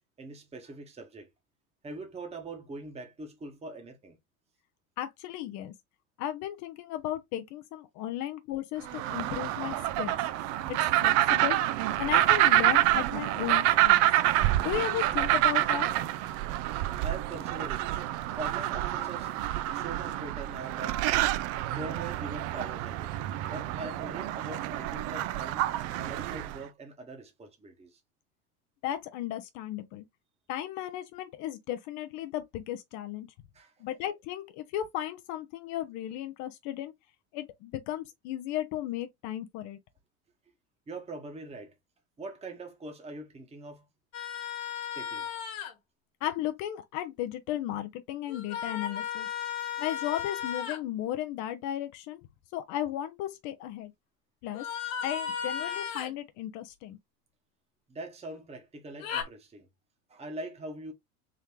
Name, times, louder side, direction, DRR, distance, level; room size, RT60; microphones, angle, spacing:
voice 1, 0.2-1.3 1.8-4.2 17.0-17.8 18.4-19.3 19.7-21.0 21.7-23.1 23.5-25.6 26.0-28.0 33.5-33.7 40.9-41.7 42.2-43.8 44.9-45.3 57.9-59.7 60.1-60.9, right 2 dB, 15° right, 1.1 m, -42 dB
voice 2, 5.0-5.7 6.2-10.2 10.7-11.6 11.9-14.0 14.6-15.9 28.8-30.1 30.5-33.3 33.8-36.9 37.3-39.8 46.2-49.3 49.8-52.3 52.5-53.9 54.4-54.7 55.0-57.0, left 12 dB, 40° left, 0.6 m, -35 dB
sound 1, 8.9-26.6, right 14 dB, 35° right, 0.4 m, -27 dB
sound 2, 44.1-45.7 48.3-50.8 54.5-56.1 59.0-59.2, left 8 dB, 60° left, 1.5 m, -35 dB
3.7 x 3.1 x 3.0 m
hypercardioid pair, 85°, 44 cm